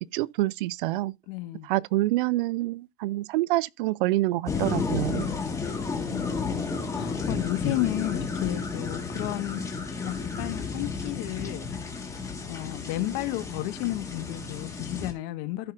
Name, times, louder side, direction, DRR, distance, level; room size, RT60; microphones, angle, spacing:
voice 1, 0.1-1.2 1.6-5.3, right 18 dB, 60° right, 0.5 m, -27 dB
voice 2, 1.3-1.7 5.9-9.6 10.0-11.9 12.5-15.7, left 16 dB, 50° left, 1.5 m, -33 dB
sound 1, 4.5-15.1, left 4 dB, 10° left, 1.7 m, -32 dB
15.5 x 5.5 x 2.6 m
supercardioid pair, 130°, 30 cm